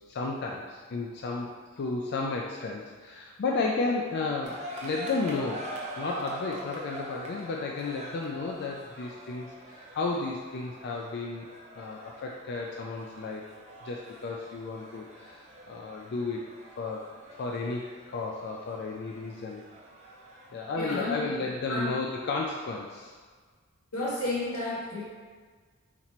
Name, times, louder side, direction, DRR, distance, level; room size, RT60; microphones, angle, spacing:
voice 1, 0.0-1.5 1.8-5.7 6.0-11.5 11.8-13.4 13.8-16.4 16.8-17.1 17.3-19.6 20.5-23.1, left 3 dB, 50° left, -1 dB, 0.4 m, -33 dB
sound 1, 4.4-21.3, right 1 dB, 30° right, 0.6 m, -44 dB
voice 2, 20.8-22.0 23.9-25.0, left 1 dB, 90° left, -6 dB, 1.4 m, -32 dB
4.1 x 3.0 x 4.2 m, 1.5 s
head